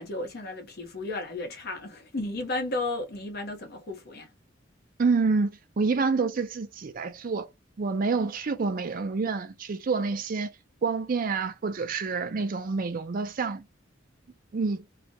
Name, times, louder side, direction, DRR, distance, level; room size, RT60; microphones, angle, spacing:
voice 1, 0.0-4.3, left 2 dB, 50° left, 0.9 m, -33 dB
voice 2, 5.0-5.5 5.8-7.5 7.8-10.5 10.8-13.6 14.5-14.8, right 4 dB, 45° right, 0.4 m, -27 dB
2.4 x 2.1 x 2.6 m
head